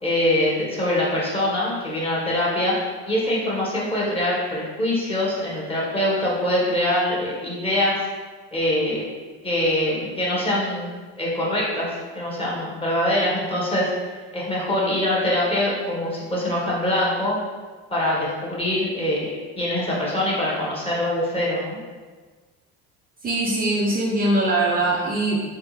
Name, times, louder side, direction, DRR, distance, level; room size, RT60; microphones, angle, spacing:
voice 1, 0.0-2.7 3.1-8.0 8.5-9.1 9.4-10.9 11.2-17.4 17.9-21.8, left 1 dB, 20° left, -5 dB, 1.4 m, -24 dB
voice 2, 23.2-25.4, right 2 dB, 30° right, -4 dB, 0.7 m, -22 dB
3.5 x 3.4 x 3.2 m, 1.4 s
supercardioid pair, 100°, 31 cm